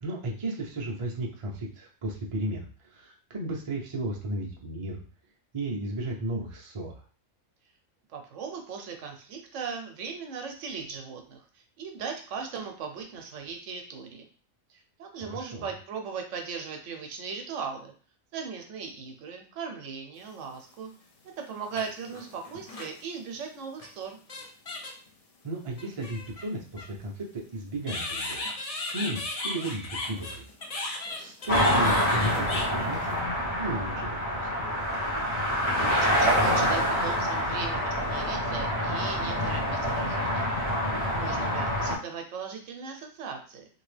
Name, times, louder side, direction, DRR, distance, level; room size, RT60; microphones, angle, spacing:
voice 1, 0.0-5.0 5.5-7.0 15.2-15.7 25.4-28.5 28.9-30.5 30.8-33.2 33.6-34.9 41.2-41.4, right 1 dB, 40° right, -1 dB, 0.5 m, -35 dB
voice 2, 8.1-14.3 14.7-17.9 18.3-20.9 21.4-24.2 35.7-40.5 41.1-43.7, right 5 dB, 70° right, 3 dB, 0.9 m, -38 dB
sound 1, 20.5-20.6 21.6-23.0 23.8-23.9 24.3-25.1 25.8-26.9 27.8-33.2, left 2 dB, 70° left, 0.3 m, -36 dB
sound 2, 31.5-42.0, equal, 30° left, 1.0 m, -26 dB
2.9 x 2.7 x 3.2 m, 0.41 s
omnidirectional pair, 1.4 m